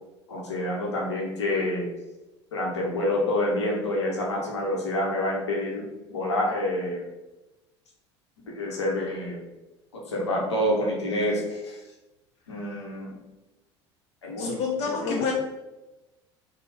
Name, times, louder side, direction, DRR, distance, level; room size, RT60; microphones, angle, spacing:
voice 1, 0.3-1.8 2.5-5.8 6.1-7.0 8.5-9.4 10.1-11.8 12.5-13.1 14.2-14.5 14.8-15.3, left 1 dB, 75° left, -2 dB, 0.9 m, -27 dB
voice 2, 14.4-15.3, left 5 dB, 45° left, -1 dB, 0.7 m, -28 dB
3.6 x 2.3 x 4.0 m, 1.0 s
figure-of-eight pair, 65°, 15 cm